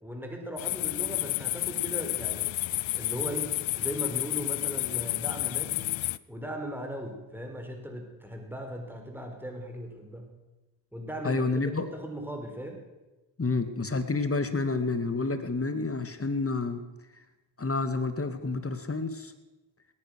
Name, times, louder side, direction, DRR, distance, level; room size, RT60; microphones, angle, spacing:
voice 1, 0.0-2.5 2.9-5.9 6.3-10.3 10.9-12.8, equal, 5° right, 3 dB, 4.5 m, -38 dB
sound 1, 0.6-6.2, left 17 dB, 80° left, 0.6 m, -31 dB
voice 2, 11.2-11.9 13.4-16.8 17.6-19.3, left 3 dB, 30° left, 10 dB, 2.0 m, -29 dB
18.0 x 11.0 x 6.5 m, 1.1 s
supercardioid pair, 45°, 45 cm